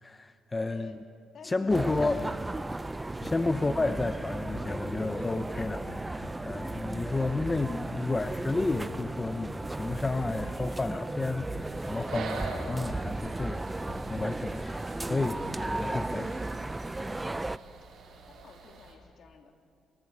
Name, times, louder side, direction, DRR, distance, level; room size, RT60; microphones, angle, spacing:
voice 1, 0.0-0.9 1.4-2.2 3.2-13.6 14.1-17.1, left 3 dB, 20° left, 10 dB, 0.7 m, -31 dB
voice 2, 1.3-2.0 18.3-19.5, left 6 dB, 60° left, 3 dB, 2.9 m, -52 dB
sound 1, 1.7-17.6, right 2 dB, 15° right, 0.5 m, -35 dB
sound 2, 1.9-4.2 4.5-6.9 7.2-8.3 8.5-9.6 9.9-12.2 12.5-14.3, left 4 dB, 90° left, 2.0 m, -49 dB
sound 3, 11.6-18.9, right 4 dB, 65° right, 4.5 m, -44 dB
28.5 x 24.0 x 4.7 m, 2.4 s
cardioid pair, 90°, 0 cm